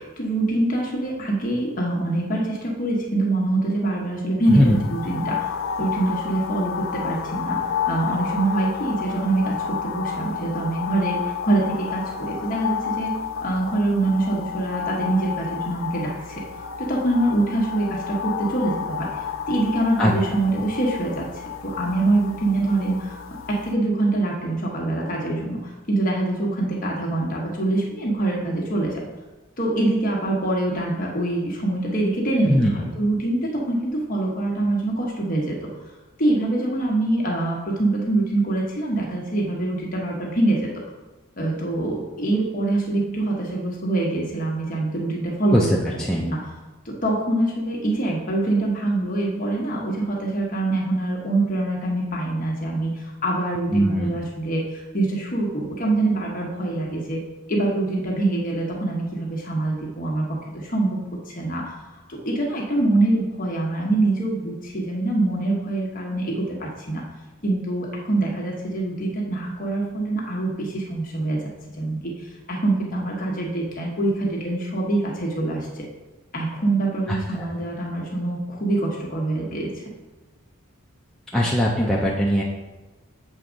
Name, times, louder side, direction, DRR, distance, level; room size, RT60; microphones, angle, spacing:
voice 1, 0.0-5.5 5.8-7.6 7.9-13.1 13.4-19.1 19.5-21.3 21.6-23.2 23.5-25.6 25.9-29.0 29.6-35.7 36.2-40.7 41.4-45.6 46.2-46.4 46.8-57.2 57.5-60.3 60.5-61.0 61.3-61.7 62.1-67.0 67.4-71.5 71.8-75.9 76.3-79.7, right 2 dB, 40° left, -2 dB, 1.1 m, -24 dB
sound 1, 4.4-23.7, left 7 dB, 60° left, 0.5 m, -31 dB
voice 2, 32.5-32.9 45.5-46.3 53.7-54.2 77.1-77.5 81.3-82.4, equal, 5° left, -5 dB, 0.5 m, -20 dB
7.5 x 3.5 x 5.1 m, 1.1 s
head